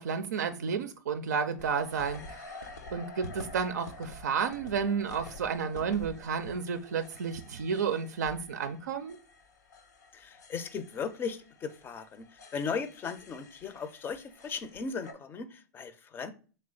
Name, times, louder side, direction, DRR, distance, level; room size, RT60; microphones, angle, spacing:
voice 1, 0.0-2.5 2.9-9.2, right 6 dB, 80° right, 0.4 m, -31 dB
sound 1, 1.6-15.1, left 2 dB, 85° left, 0.7 m, -49 dB
voice 2, 10.1-16.3, left 5 dB, 25° left, 0.5 m, -37 dB
3.3 x 3.3 x 3.7 m
hypercardioid pair, 110°, 9 cm